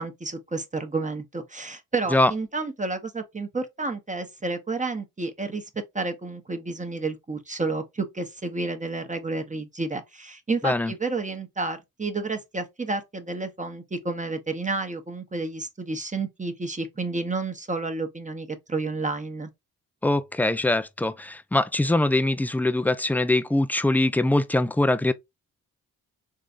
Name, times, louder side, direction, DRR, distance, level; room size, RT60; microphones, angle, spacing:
voice 1, 0.0-5.6 5.9-19.5, right 3 dB, 20° right, 0.9 m, -30 dB
voice 2, 20.0-25.1, left 2 dB, 5° left, 0.4 m, -22 dB
3.7 x 3.2 x 2.5 m
supercardioid pair, 55°, 37 cm